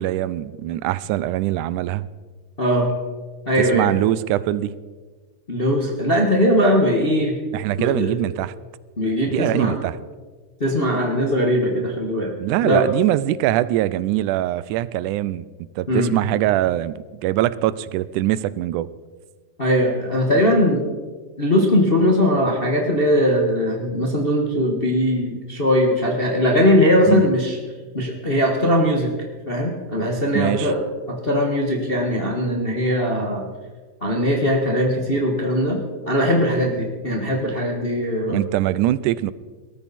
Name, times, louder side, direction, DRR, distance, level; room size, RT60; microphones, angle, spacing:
voice 1, 0.0-2.1 3.6-4.7 7.5-8.5 9.3-10.0 12.4-15.5 15.8-18.9 27.1-27.3 30.3-30.7 38.3-39.3, right 14 dB, 90° right, 18 dB, 2.1 m, -22 dB
voice 2, 2.6-2.9 3.5-3.9 5.5-7.3 7.8-8.1 9.0-9.8 10.6-12.3 12.6-12.9 15.9-16.1 19.6-20.8 21.4-27.6 27.9-29.1 29.5-30.8 31.1-33.4 34.0-35.8 36.0-38.4, equal, 35° left, 1 dB, 0.9 m, -20 dB
19.5 x 13.5 x 4.2 m, 1.4 s
omnidirectional pair, 3.5 m